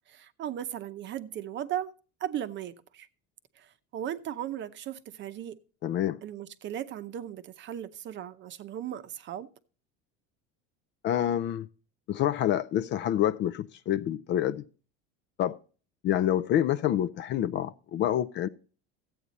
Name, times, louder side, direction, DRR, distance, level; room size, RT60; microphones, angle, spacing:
voice 1, 0.1-1.9 2.2-3.1 3.6-5.6 6.2-9.5, right 11 dB, 40° right, 0.7 m, -37 dB
voice 2, 5.8-6.2 11.0-11.7 12.1-14.6 15.4-15.6 16.0-18.5, left 11 dB, 40° left, 0.4 m, -27 dB
13.5 x 8.6 x 4.1 m
cardioid pair, 140°, 30 cm